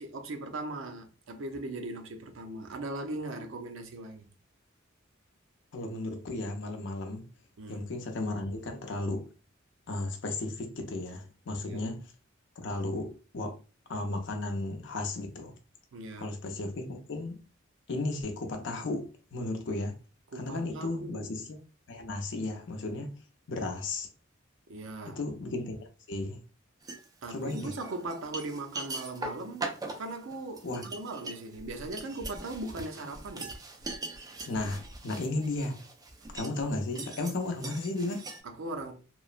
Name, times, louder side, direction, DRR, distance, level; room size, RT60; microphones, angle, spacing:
voice 1, 0.0-4.3 7.6-7.9 11.7-11.8 15.9-16.3 20.3-21.5 24.7-25.2 27.2-29.7 30.0-33.5 34.2-34.3 38.4-38.9, right 2 dB, 75° right, 0.5 m, -39 dB
voice 2, 5.7-7.3 7.7-9.3 9.9-12.1 12.6-13.6 13.9-15.5 16.2-17.4 17.9-20.0 20.3-21.6 21.9-23.1 23.5-24.1 25.0-26.4 27.3-27.7 30.6-30.9 34.5-35.8 36.3-38.3, left 2 dB, 65° left, 0.5 m, -34 dB
sound 1, 26.8-27.0 27.5-38.4, right 2 dB, 20° right, 0.4 m, -41 dB
3.0 x 2.0 x 2.4 m
head